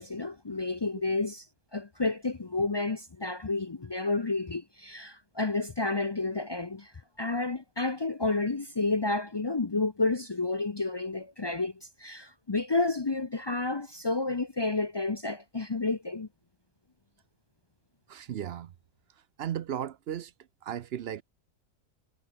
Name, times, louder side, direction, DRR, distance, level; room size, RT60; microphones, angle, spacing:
voice 1, 0.0-1.4 1.7-6.9 7.2-11.7 12.0-16.3, left 3 dB, 40° left, 0.3 m, -30 dB
voice 2, 18.1-18.7 19.4-20.3 20.6-21.2, right 10 dB, 60° right, 0.7 m, -35 dB
omnidirectional pair, 1.5 m